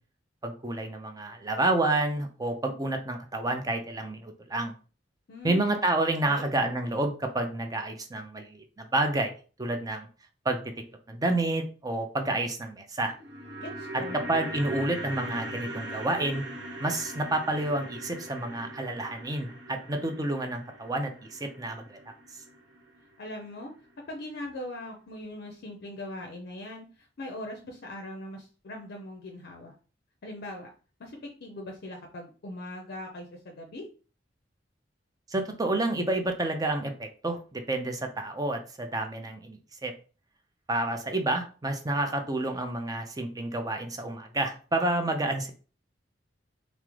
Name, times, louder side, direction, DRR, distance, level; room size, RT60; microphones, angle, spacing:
voice 1, 0.4-4.7 5.4-10.1 10.4-10.6 11.1-13.1 14.1-16.4 16.8-22.0 35.3-39.9 40.7-45.5, right 2 dB, 20° right, 5 dB, 0.5 m, -29 dB
voice 2, 5.3-5.6 6.2-6.5 13.6-14.2 23.2-23.7 24.1-29.7 30.2-30.7 31.0-33.8, left 1 dB, 55° left, 1 dB, 0.5 m, -40 dB
sound 1, 13.1-23.3 23.6-23.7, right 1 dB, 70° right, 0.8 m, -40 dB
3.5 x 2.0 x 3.1 m, 0.37 s
head